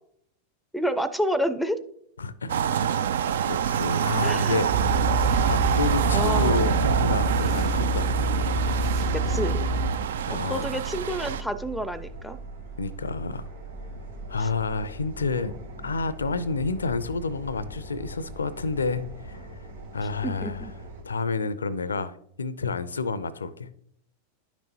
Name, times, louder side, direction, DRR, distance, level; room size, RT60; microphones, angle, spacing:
voice 1, 0.7-1.8 4.2-4.6 6.1-6.7 9.1-9.6 10.5-12.4 14.4-14.5 20.2-20.7, equal, ahead, 14 dB, 0.5 m, -29 dB
voice 2, 2.2-2.9 3.4-4.7 5.4-8.1 10.2-10.7 12.8-13.4 14.3-15.5 15.8-19.4 19.9-20.7 21.0-23.7, left 4 dB, 75° left, 17 dB, 0.5 m, -29 dB
sound 1, 2.5-11.4, right 8 dB, 60° right, 0.4 m, -26 dB
sound 2, 3.3-21.0, right 3 dB, 80° right, 2.1 m, -40 dB
sound 3, 4.7-9.9, right 1 dB, 45° right, 0.8 m, -26 dB
10.0 x 6.1 x 2.9 m, 0.68 s
figure-of-eight pair, 90°, 0 cm